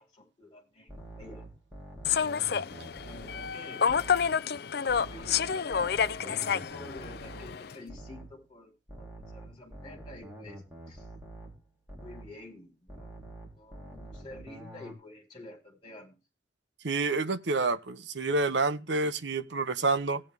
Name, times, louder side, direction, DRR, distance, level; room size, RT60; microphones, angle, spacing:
voice 1, 0.0-1.4 3.0-3.8 5.0-10.6 10.9-11.1 12.0-16.2, left 2 dB, 25° left, 4.4 m, -49 dB
sound 1, 0.9-4.4 4.9-8.4 8.9-12.4 12.9-14.9, right 1 dB, 10° right, 3.5 m, -46 dB
Human voice / Subway metro underground, 2.0-7.8, left 7 dB, 55° left, 0.5 m, -29 dB
voice 2, 16.8-20.2, right 3 dB, 65° right, 0.9 m, -28 dB
17.5 x 8.8 x 3.5 m
head